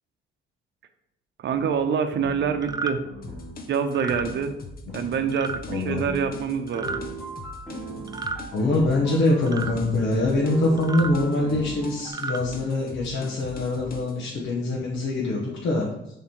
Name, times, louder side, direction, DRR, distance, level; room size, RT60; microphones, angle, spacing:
voice 1, 1.4-3.0 3.7-4.5 4.9-7.0, right 6 dB, 65° right, 8 dB, 0.8 m, -26 dB
sound 1, 1.5-1.7 2.1-3.5 4.0-4.4 4.9-5.4 5.8-12.1, right 1 dB, 5° left, 2.4 m, -38 dB
sound 2, 2.6-2.9 3.9-4.2 5.3-5.6 6.7-7.0 8.1-8.4 9.5-9.7 10.8-11.1 12.0-12.4, right 4 dB, 20° right, 0.5 m, -32 dB
sound 3, 3.2-14.1, left 3 dB, 50° left, 1.0 m, -41 dB
voice 2, 5.7-6.0 8.5-15.9, left 2 dB, 65° left, -4 dB, 1.4 m, -24 dB
7.1 x 3.6 x 4.5 m, 0.84 s
cardioid pair, 90°, 20 cm